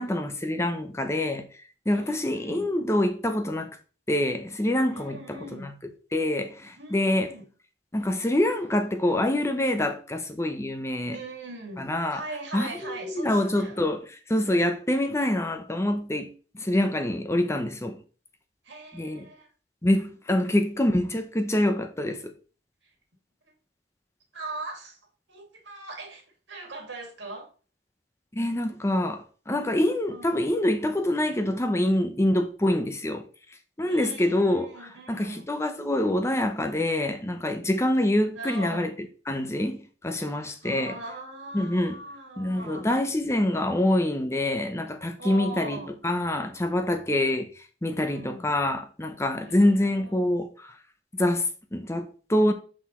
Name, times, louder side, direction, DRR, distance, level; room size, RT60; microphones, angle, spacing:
voice 1, 0.0-1.5 1.9-3.7 4.1-5.7 6.1-7.3 7.9-11.2 11.8-12.2 12.5-18.0 18.9-19.3 19.8-22.3 28.3-33.2 33.8-34.7 35.1-38.9 39.3-41.0 41.5-41.9 42.4-50.8 51.1-52.5, left 1 dB, 15° left, 0.7 m, -26 dB
voice 2, 1.9-2.7 4.9-5.7 6.8-7.5 11.1-13.8 18.6-19.5 20.4-20.6 22.8-22.9 24.3-25.0 25.3-27.5 30.1-30.6 33.9-35.5 38.3-39.0 40.2-42.9 45.2-46.0 47.9-48.4 49.4-50.3, right 2 dB, 85° right, 2.4 m, -41 dB
6.3 x 5.9 x 3.1 m
head